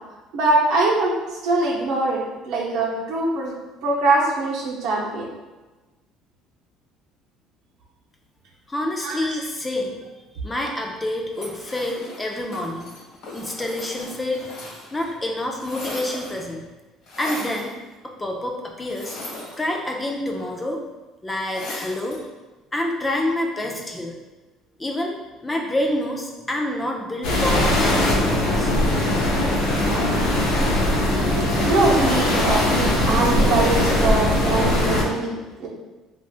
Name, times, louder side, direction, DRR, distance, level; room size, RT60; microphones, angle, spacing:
voice 1, 0.3-3.5 3.8-5.3 9.0-9.4 30.8-35.7, right 2 dB, 70° right, -3 dB, 0.7 m, -23 dB
voice 2, 8.7-10.0 10.4-13.0 13.3-14.5 14.9-16.7 17.2-17.8 18.0-19.2 19.6-20.8 21.2-22.2 22.7-24.2 24.8-25.1 25.4-28.8, left 1 dB, 15° left, 1 dB, 0.4 m, -27 dB
sound 1, 11.3-15.1 15.4-16.5 17.1-17.7 18.8-20.0 21.5-22.3, left 2 dB, 55° left, 1.4 m, -37 dB
sound 2, 27.2-35.0, left 1 dB, 80° left, 0.8 m, -20 dB
3.4 x 2.4 x 2.4 m, 1.2 s
cardioid pair, 125°, 0 cm